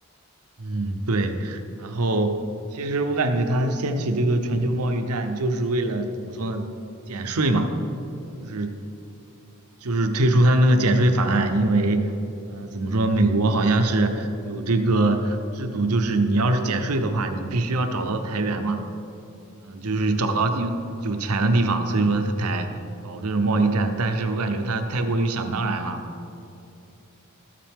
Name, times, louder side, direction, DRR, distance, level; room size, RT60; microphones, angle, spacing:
voice 1, 0.6-2.3 2.7-6.7 7.1-7.7 8.4-8.7 9.8-12.1 12.5-18.8 19.6-20.8 21.0-22.8 23.0-26.0, right 2 dB, 85° right, 6 dB, 0.8 m, -23 dB
13.0 x 7.6 x 3.6 m, 2.7 s
head